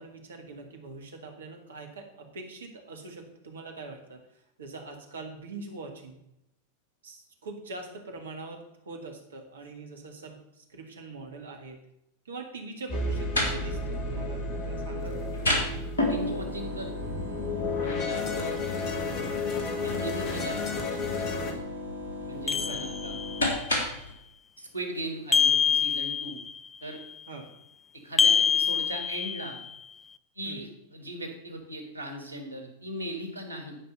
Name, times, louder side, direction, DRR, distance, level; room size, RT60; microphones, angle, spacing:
voice 1, 0.0-6.2 7.0-11.8 12.2-15.3 22.5-22.8 27.3-27.5 30.4-30.6, right 3 dB, 65° right, 4 dB, 1.8 m, -43 dB
sound 1, 12.9-24.1, left 1 dB, 70° left, 2.2 m, -33 dB
sound 2, 12.9-21.5, left 3 dB, 35° left, 1.6 m, -32 dB
voice 2, 16.0-16.9 17.8-19.1 19.8-21.6 22.3-23.1 24.6-26.4 26.8-27.0 28.0-29.6 30.3-33.8, right 1 dB, 85° left, 5 dB, 1.7 m, -38 dB
sound 3, 22.5-23.5 25.3-26.6 28.2-29.7, left 7 dB, 15° left, 0.4 m, -25 dB
9.9 x 5.2 x 6.5 m, 0.82 s
figure-of-eight pair, 90°, 0 cm